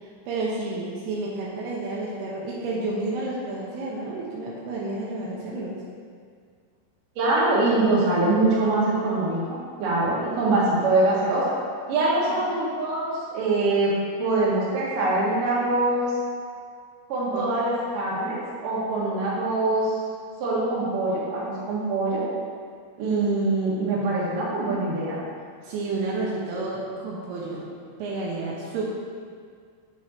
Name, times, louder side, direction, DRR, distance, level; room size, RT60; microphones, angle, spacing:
voice 1, 0.0-5.8 8.9-9.0 12.3-12.4 17.3-17.5 25.6-27.7 28.0-28.9, right 2 dB, 85° right, -5 dB, 2.3 m, -31 dB
voice 2, 7.2-11.4 11.9-13.9 14.2-16.2 17.1-20.0 20.4-22.2 23.0-25.2, right 2 dB, 60° right, -7 dB, 2.5 m, -24 dB
8.3 x 7.3 x 2.9 m, 2.1 s
omnidirectional pair, 5.9 m